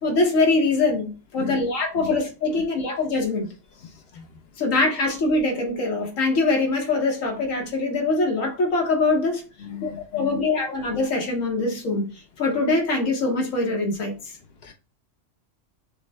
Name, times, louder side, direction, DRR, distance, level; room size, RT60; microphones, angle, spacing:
voice 1, 0.0-3.5 4.1-4.2 4.6-9.4 9.8-12.1 12.4-14.1, left 3 dB, 90° left, 1.4 m, -23 dB
voice 2, 9.6-10.4 14.6-14.7, left 9 dB, 60° left, 0.8 m, -36 dB
6.1 x 2.1 x 3.3 m
omnidirectional pair, 1.3 m